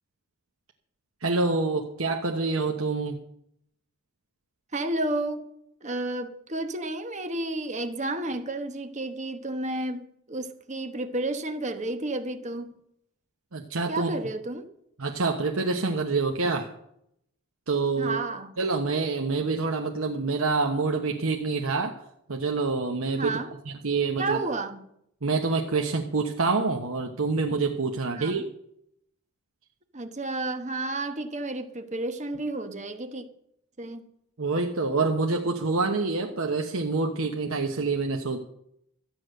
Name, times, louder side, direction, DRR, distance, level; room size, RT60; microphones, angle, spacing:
voice 1, 1.2-3.2 13.5-14.1 15.0-16.7 17.7-18.2 18.6-22.0 22.3-24.4 25.2-28.5 34.4-38.4, right 3 dB, 70° right, 1.1 m, -27 dB
voice 2, 4.7-5.5 5.8-12.7 13.9-14.7 18.0-18.5 23.2-23.5 24.2-24.8 28.1-28.4 29.9-33.3 33.8-34.1, right 2 dB, 35° right, 1.2 m, -31 dB
13.0 x 9.6 x 6.5 m
head